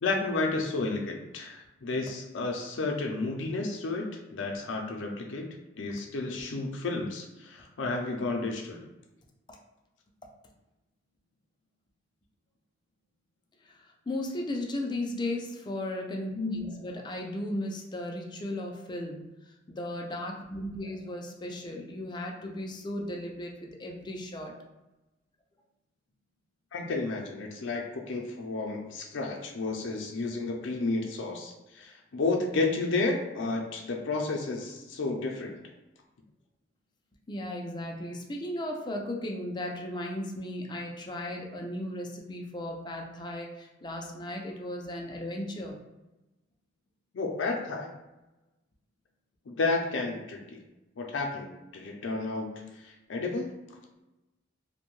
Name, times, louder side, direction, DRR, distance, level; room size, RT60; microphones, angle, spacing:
voice 1, 0.0-5.5 5.8-8.8 26.7-35.6 47.1-47.9 49.5-50.6 51.0-53.5, left 3 dB, 85° left, 2 dB, 0.5 m, -32 dB
voice 2, 13.6-19.3 19.7-24.6 37.3-45.8, left 1 dB, 25° left, 1 dB, 0.4 m, -36 dB
2.6 x 2.1 x 3.0 m, 1.0 s
head